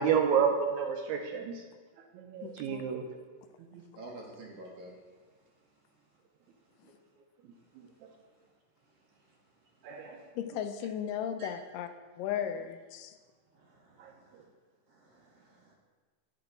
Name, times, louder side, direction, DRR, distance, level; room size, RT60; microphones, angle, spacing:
voice 1, 0.0-1.6 2.2-3.0 3.7-3.8 9.8-10.2 14.0-14.1, right 7 dB, 75° right, 3 dB, 1.8 m, -29 dB
voice 2, 2.4-2.9 10.4-11.9 12.2-13.2, left 9 dB, 90° left, 8 dB, 2.3 m, -36 dB
voice 3, 3.9-4.9 11.4-11.5 13.6-14.4 14.9-15.7, right 1 dB, 60° right, -3 dB, 1.8 m, -49 dB
9.5 x 6.2 x 3.9 m, 1.4 s
omnidirectional pair, 3.8 m